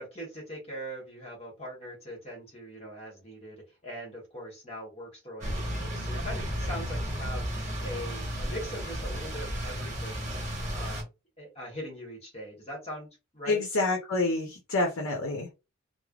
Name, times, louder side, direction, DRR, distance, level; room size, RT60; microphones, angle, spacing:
voice 1, 0.0-10.4 10.7-11.1 11.4-13.1 13.3-13.6, equal, 30° left, -2 dB, 1.2 m, -41 dB
sound 1, 5.4-11.0, equal, 35° right, 1.0 m, -33 dB
voice 2, 13.5-15.5, left 2 dB, 85° left, 1 dB, 0.7 m, -28 dB
3.2 x 2.0 x 2.3 m, 0.26 s
head